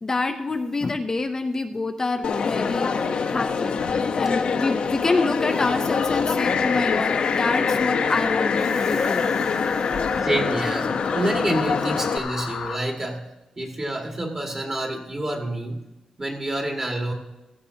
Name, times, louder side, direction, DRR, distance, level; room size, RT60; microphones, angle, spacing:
voice 1, 0.0-3.8 4.1-10.0, left 3 dB, 25° left, 5 dB, 0.5 m, -27 dB
Crowd, 2.2-12.2, left 5 dB, 65° left, 0.8 m, -25 dB
sound 1, 6.4-12.8, left 6 dB, 85° left, 1.2 m, -29 dB
voice 2, 10.2-13.2 13.6-15.8 16.2-17.1, right 1 dB, 25° right, 1 dB, 1.7 m, -28 dB
15.5 x 14.5 x 2.8 m, 1.0 s
wide cardioid pair, 140°, 2 cm